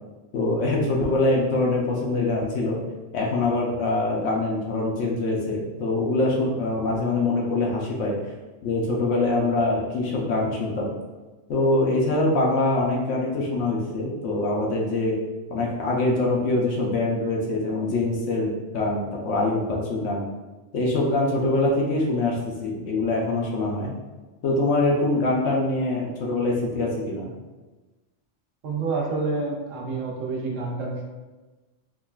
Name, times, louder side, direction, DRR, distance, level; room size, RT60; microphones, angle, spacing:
voice 1, 0.3-2.8 3.1-8.1 8.6-10.9 11.5-15.2 15.5-20.2 20.7-23.9 24.4-27.3, left 2 dB, 75° left, -2 dB, 0.9 m, -24 dB
voice 2, 28.6-31.0, right 3 dB, 75° right, -1 dB, 1.0 m, -28 dB
3.7 x 2.3 x 2.3 m, 1.2 s
omnidirectional pair, 1.3 m